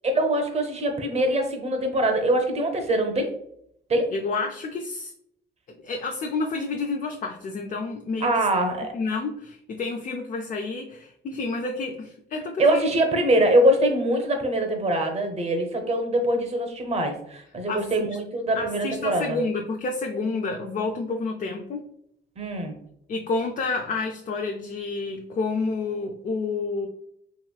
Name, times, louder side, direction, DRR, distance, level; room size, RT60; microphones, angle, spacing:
voice 1, 0.0-3.3 3.9-4.1 8.2-8.9 12.6-19.4 22.4-22.8, right 1 dB, 30° right, 4 dB, 0.7 m, -23 dB
voice 2, 4.1-5.1 5.7-8.5 8.9-12.9 17.7-18.2 18.5-21.8 23.1-26.9, left 3 dB, 40° left, 3 dB, 0.4 m, -29 dB
3.0 x 2.9 x 2.3 m, 0.72 s
cardioid pair, 90°, 20 cm